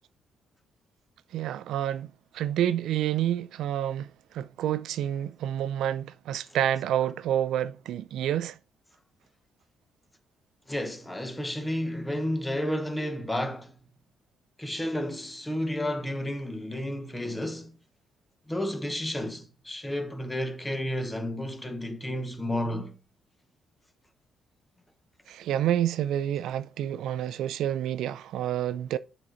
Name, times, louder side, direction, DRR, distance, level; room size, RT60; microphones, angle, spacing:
voice 1, 1.3-2.1 2.3-4.1 4.3-8.6 25.3-29.0, right 11 dB, 80° right, 0.3 m, -28 dB
voice 2, 10.7-13.8 14.6-17.7 18.5-23.0, left 1 dB, 10° left, 1.0 m, -31 dB
7.4 x 4.0 x 3.8 m
cardioid pair, 90°, 0 cm